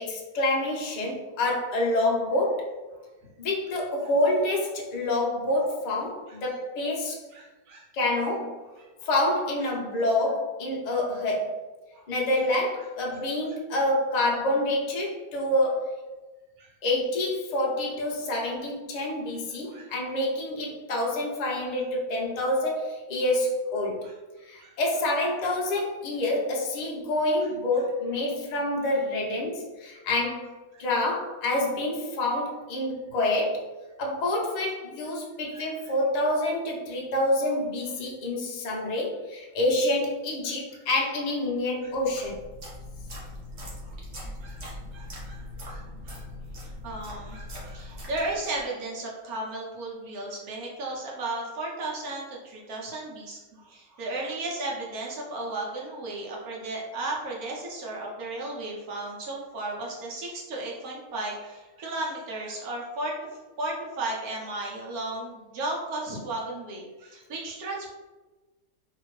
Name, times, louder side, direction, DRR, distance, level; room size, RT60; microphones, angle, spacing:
voice 1, 0.0-2.7 3.4-7.2 7.9-8.6 9.0-11.6 12.1-15.9 16.8-24.0 24.4-33.7 34.0-42.4, left 1 dB, 55° left, -2 dB, 0.4 m, -27 dB
voice 2, 7.3-7.9 8.8-9.1 11.9-12.1 13.1-13.2 16.6-16.7 19.6-19.9 24.0-24.1 24.6-24.7 30.7-30.8 35.5-35.7 43.8-44.6 44.9-46.2 46.8-63.1 63.6-67.9, right 2 dB, 75° right, -2 dB, 1.3 m, -35 dB
sound 1, 41.9-48.6, left 1 dB, 55° right, 1.0 m, -41 dB
2.8 x 2.6 x 3.0 m, 1.2 s
omnidirectional pair, 1.6 m